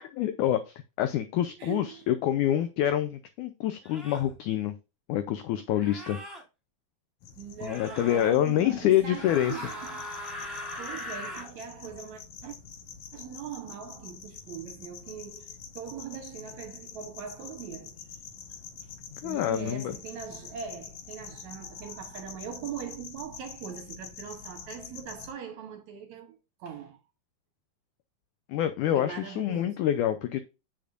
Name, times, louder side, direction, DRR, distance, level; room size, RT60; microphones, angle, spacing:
voice 1, 0.2-4.7 5.1-6.2 7.6-9.6 19.2-19.9 28.5-30.4, left 11 dB, 90° left, 1.7 m, -27 dB
voice 2, 1.6-2.0 7.4-10.1 10.4-12.6 13.1-18.0 19.2-27.0 28.9-29.8, right 8 dB, 70° right, 1.9 m, -41 dB
sound 1, 2.5-2.6 3.8-4.3 5.7-6.4 7.6-8.3 9.1-11.5, left 1 dB, ahead, 1.6 m, -40 dB
sound 2, 7.2-25.3, left 6 dB, 70° left, 1.7 m, -46 dB
8.0 x 6.8 x 2.4 m
omnidirectional pair, 4.2 m